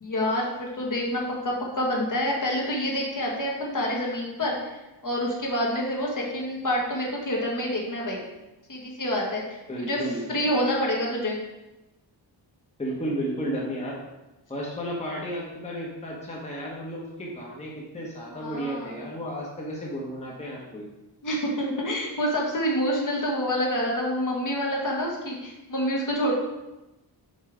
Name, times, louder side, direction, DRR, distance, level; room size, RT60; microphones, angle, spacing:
voice 1, 0.0-8.2 8.7-10.0 10.3-11.4 18.3-19.1 21.2-26.3, equal, 45° left, -2 dB, 1.5 m, -27 dB
voice 2, 9.7-10.2 12.8-14.0 14.5-20.9, equal, 15° left, -4 dB, 1.1 m, -33 dB
5.4 x 4.8 x 5.0 m, 1.0 s
wide cardioid pair, 160°, 42 cm